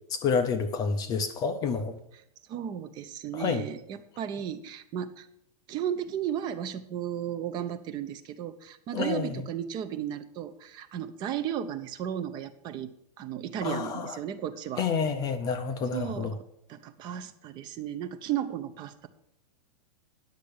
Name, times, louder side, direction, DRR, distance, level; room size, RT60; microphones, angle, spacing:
voice 1, 0.1-2.0 3.3-3.6 8.9-9.4 13.6-14.2 14.8-16.3, left 5 dB, 20° left, 0.5 m, -29 dB
voice 2, 2.5-5.3 5.7-12.9 13.2-14.9 15.9-16.4 16.7-19.1, right 9 dB, 20° right, 0.6 m, -34 dB
10.0 x 6.6 x 6.5 m
supercardioid pair, 160°, 19 cm